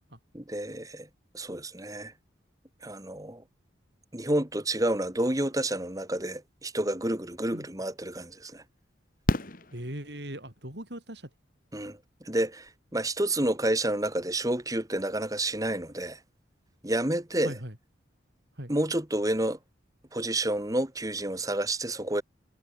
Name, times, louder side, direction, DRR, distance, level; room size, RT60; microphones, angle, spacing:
voice 1, 0.3-1.1 1.3-2.1 2.8-3.4 4.1-8.6 11.7-12.0 12.2-16.2 16.8-17.6 18.7-19.6 20.1-22.2, right 1 dB, 20° right, 2.1 m, -29 dB
Fireworks, 7.6-7.7 9.3-10.6 12.3-12.4 12.6-12.7, left 1 dB, 45° left, 2.0 m, -31 dB
voice 2, 9.7-11.3 17.4-17.7 18.6-18.7, right 1 dB, 60° right, 6.7 m, -39 dB
head